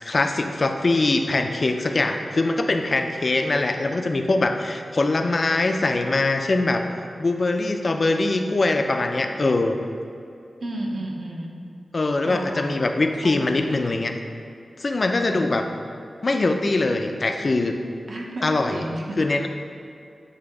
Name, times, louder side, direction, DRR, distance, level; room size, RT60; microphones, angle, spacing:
voice 1, 0.0-6.9 7.2-9.8 11.9-14.1 14.8-15.6 16.2-17.8 18.4-18.8 19.2-19.5, left 2 dB, 40° left, 5 dB, 0.4 m, -22 dB
voice 2, 10.6-11.5 12.2-12.8 13.2-13.8 15.3-15.5 18.1-19.2, right 1 dB, 55° right, -1 dB, 0.9 m, -33 dB
8.2 x 2.8 x 5.9 m, 2.5 s
wide cardioid pair, 140°, 0 cm